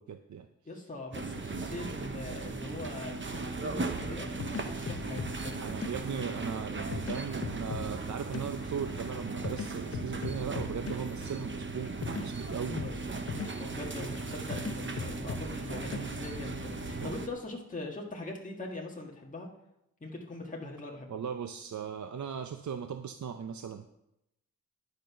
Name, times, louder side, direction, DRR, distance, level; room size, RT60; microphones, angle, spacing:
voice 1, 0.0-0.5 5.6-12.8 16.9-17.1 21.1-24.0, right 7 dB, 55° right, 8 dB, 0.6 m, -38 dB
voice 2, 0.6-5.5 12.7-19.5 20.0-21.2, left 2 dB, 20° left, -2 dB, 1.7 m, -42 dB
sound 1, 1.1-17.3, right 4 dB, 35° right, 0.9 m, -38 dB
sound 2, 3.3-17.1, left 5 dB, 45° left, 0.7 m, -42 dB
10.5 x 6.6 x 5.7 m, 0.84 s
wide cardioid pair, 95°, 34 cm